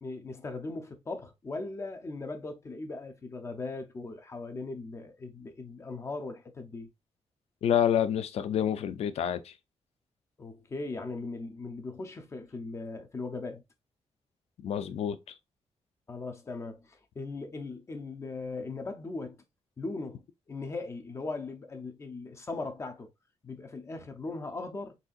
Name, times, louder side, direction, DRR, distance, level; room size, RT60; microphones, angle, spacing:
voice 1, 0.0-6.9 10.4-13.6 16.1-19.4 19.8-23.1 23.4-25.0, left 3 dB, 25° left, 0.6 m, -39 dB
voice 2, 7.6-9.5 14.6-15.2, left 9 dB, 70° left, 0.5 m, -28 dB
4.1 x 3.8 x 2.5 m
wide cardioid pair, 170°, 11 cm